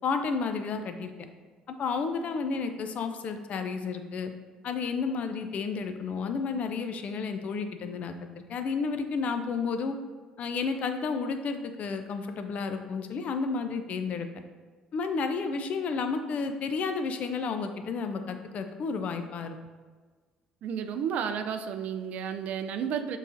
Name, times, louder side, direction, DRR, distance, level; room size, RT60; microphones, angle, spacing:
voice 1, 0.0-1.1 1.8-4.3 4.6-8.2 8.5-10.0 10.4-14.3 14.9-19.6, left 5 dB, 55° left, 7 dB, 0.4 m, -31 dB
voice 2, 20.6-23.2, right 7 dB, 60° right, 8 dB, 0.4 m, -32 dB
6.5 x 3.2 x 2.6 m, 1.4 s
hypercardioid pair, 60°, 3 cm